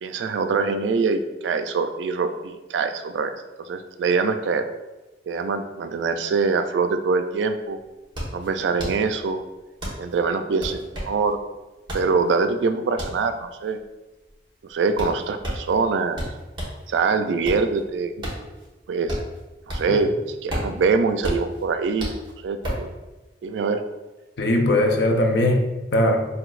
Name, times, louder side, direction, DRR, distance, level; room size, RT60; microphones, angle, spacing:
voice 1, 0.0-4.7 5.3-7.8 8.3-9.4 10.0-11.4 11.9-13.8 14.7-16.2 16.9-18.1 18.9-19.2 19.7-20.1 20.4-22.1 22.4-22.9 23.4-23.8, right 4 dB, 90° right, 8 dB, 0.3 m, -24 dB
sound 1, 7.7-16.9 17.2-20.1 20.3-22.9, equal, 25° right, 1.2 m, -32 dB
voice 2, 24.4-26.2, left 1 dB, 70° left, 3 dB, 0.5 m, -20 dB
5.9 x 2.6 x 2.4 m, 1.1 s
head